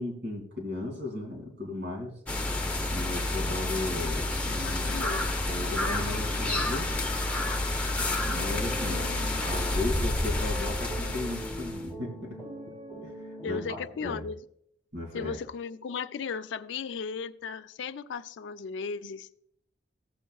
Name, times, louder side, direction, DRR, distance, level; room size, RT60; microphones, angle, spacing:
voice 1, 0.0-2.2 2.9-5.1 5.5-6.9 8.3-9.1 9.4-12.4 13.0-14.3 14.9-15.4, left 2 dB, 70° right, 2.4 m, -36 dB
sound 1, 2.3-11.9, left 2 dB, 5° left, 0.8 m, -29 dB
voice 2, 4.5-5.3 8.9-9.3 13.4-14.4 15.1-19.3, left 5 dB, 70° left, 0.3 m, -36 dB
sound 2, 8.2-13.8, equal, 25° right, 2.7 m, -42 dB
15.0 x 8.1 x 2.3 m
head